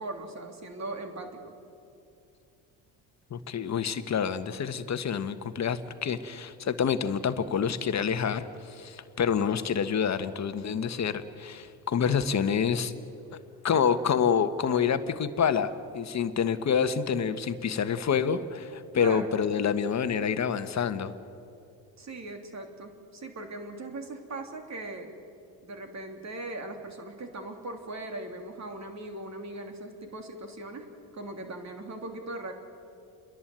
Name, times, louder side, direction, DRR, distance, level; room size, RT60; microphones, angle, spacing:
voice 1, 0.0-1.5 19.0-19.4 22.0-25.1 25.6-30.9 31.1-32.5, right 2 dB, 40° right, 5 dB, 3.2 m, -39 dB
voice 2, 3.3-12.9 13.3-13.4 13.6-21.1, left 7 dB, 40° left, 11 dB, 1.3 m, -27 dB
29.5 x 11.0 x 9.3 m, 2.6 s
supercardioid pair, 85°, 44 cm